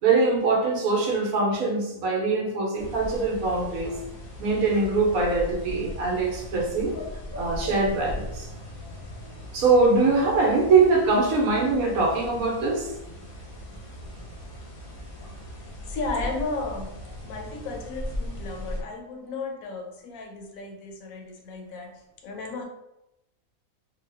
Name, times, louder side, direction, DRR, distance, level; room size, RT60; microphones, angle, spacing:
voice 1, 0.0-4.0 4.4-7.0 7.4-8.5 9.5-12.9, right 3 dB, 80° right, -1 dB, 1.1 m, -22 dB
sound 1, 2.8-18.8, left 1 dB, 50° left, 0.8 m, -38 dB
voice 2, 15.9-17.0 17.2-22.7, left 3 dB, 75° left, 2 dB, 1.0 m, -34 dB
2.8 x 2.2 x 3.3 m, 0.88 s
omnidirectional pair, 1.5 m